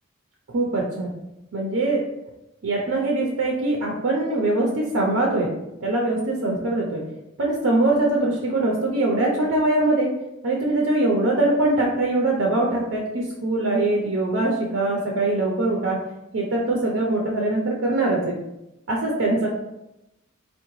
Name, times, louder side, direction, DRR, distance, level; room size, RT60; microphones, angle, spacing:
voice 1, 0.5-1.1 1.5-2.0 2.6-5.5 5.8-7.0 7.4-10.1 10.4-16.0 16.3-18.4 18.9-19.5, right 2 dB, 75° right, -1 dB, 0.5 m, -22 dB
3.6 x 2.1 x 3.0 m, 0.90 s
head